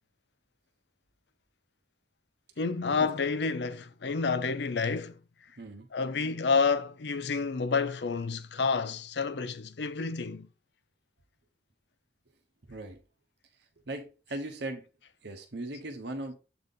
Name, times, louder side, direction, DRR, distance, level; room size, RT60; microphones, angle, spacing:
voice 1, 2.6-5.2 5.9-10.5, left 4 dB, 70° left, 0.6 m, -29 dB
voice 2, 5.6-5.9 12.6-13.0 13.9-14.9 15.2-16.4, right 2 dB, 70° right, 1.0 m, -38 dB
7.9 x 4.0 x 3.6 m
head